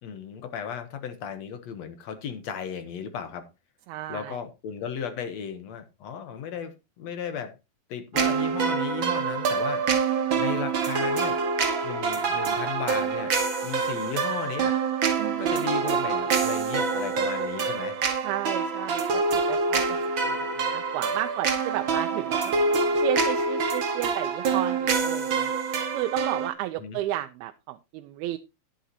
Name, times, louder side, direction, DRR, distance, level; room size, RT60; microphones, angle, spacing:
voice 1, 0.0-3.5 4.1-7.6 7.9-11.4 11.8-13.3 13.6-14.8 15.4-18.0 26.8-27.0, left 7 dB, 70° left, 1.6 m, -35 dB
voice 2, 3.9-4.4 15.2-15.7 18.2-22.5 23.0-25.5 25.9-28.4, right 15 dB, 90° right, 2.6 m, -33 dB
sound 1, 8.1-26.5, right 5 dB, 50° right, 1.4 m, -26 dB
11.5 x 11.5 x 2.8 m
omnidirectional pair, 4.3 m